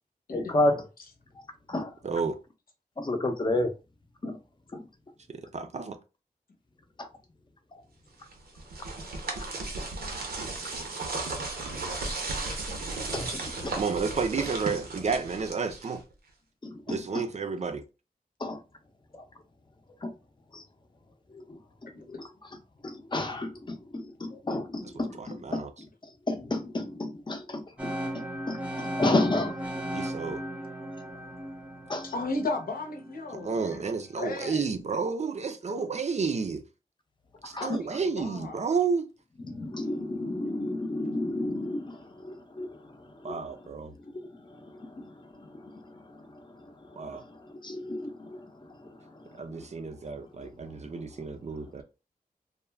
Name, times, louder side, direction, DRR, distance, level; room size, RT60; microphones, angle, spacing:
voice 1, 0.3-0.8 1.7-1.9 3.0-3.7 4.2-4.4 4.7-4.8 13.1-13.3 13.6-13.7 16.6-17.0 18.4-18.6 20.0-20.1 20.5-20.6 22.8-25.7 26.3-27.6 28.5-29.5 31.9-32.0 37.5-37.7 39.5-42.7 45.0-45.1 47.6-48.3, left 2 dB, 30° left, 0.6 m, -30 dB
voice 2, 2.0-2.4 5.3-6.0 13.8-16.0 16.9-17.8 24.8-25.7 29.9-30.4 33.3-36.6 37.4-39.1 43.2-43.9 47.0-47.2 49.4-51.8, right 5 dB, 45° right, 0.4 m, -31 dB
sound 1, 8.3-16.1, right 3 dB, 80° right, 0.7 m, -35 dB
sound 2, 27.8-33.7, right 1 dB, 10° right, 0.6 m, -37 dB
voice 3, 32.0-33.9 34.2-34.7 35.7-35.8 37.6-38.6, left 2 dB, 70° left, 0.7 m, -35 dB
2.3 x 2.2 x 3.2 m
wide cardioid pair, 90°, 16 cm